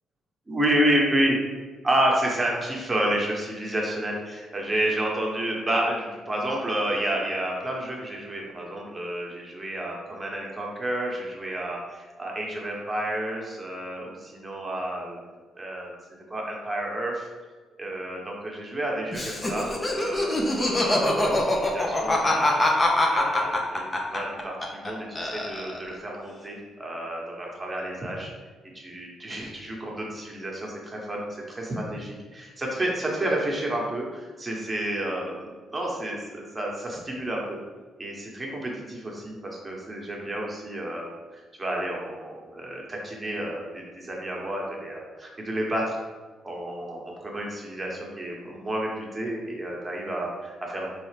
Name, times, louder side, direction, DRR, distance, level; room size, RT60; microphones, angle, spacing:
voice 1, 0.5-1.4 1.8-15.2 15.6-15.9 16.3-17.3 17.8-22.6 23.1-28.3 28.7-37.6 38.0-41.0 41.3-46.0 46.4-50.9, right 1 dB, 20° right, -2 dB, 1.1 m, -30 dB
Laughter, 19.1-24.9 25.2-25.9, left 1 dB, 30° left, 0.7 m, -24 dB
4.0 x 3.2 x 3.4 m, 1.3 s
cardioid pair, 90°, 0 cm